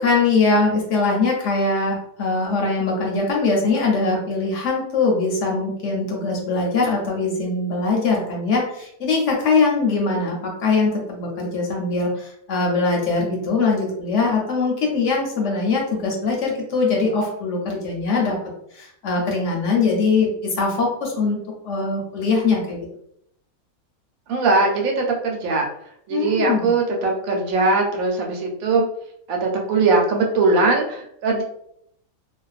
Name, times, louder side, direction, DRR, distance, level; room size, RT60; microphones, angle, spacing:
voice 1, 0.0-18.4 18.7-21.4 21.6-22.8 26.1-26.7, left 3 dB, 65° left, -1 dB, 0.9 m, -22 dB
voice 2, 24.3-25.7 26.1-28.9 29.3-31.4, right 3 dB, 75° right, 1 dB, 1.0 m, -20 dB
2.5 x 2.3 x 2.3 m, 0.71 s
omnidirectional pair, 1.5 m